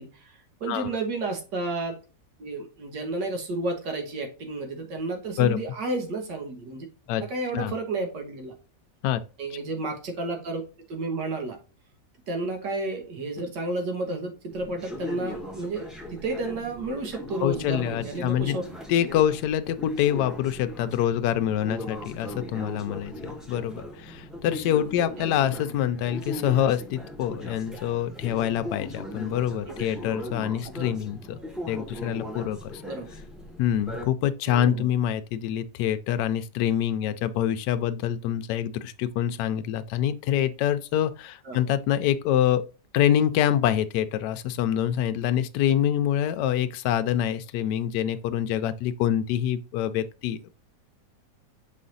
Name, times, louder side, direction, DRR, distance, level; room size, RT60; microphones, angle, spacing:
voice 1, 0.0-2.0 2.4-6.9 7.2-8.5 9.4-10.6 10.9-11.6 12.3-18.6 25.2-25.3 29.7-29.8 32.9-33.1 34.5-34.9 41.5-41.6, right 2 dB, 80° right, 1.9 m, -31 dB
sound 1, 14.5-34.1, left 1 dB, ahead, 0.9 m, -39 dB
voice 2, 17.4-18.6 18.9-31.4 31.7-32.8 33.6-42.6 42.9-50.5, left 10 dB, 75° left, 1.1 m, -26 dB
6.2 x 4.2 x 3.9 m
omnidirectional pair, 1.9 m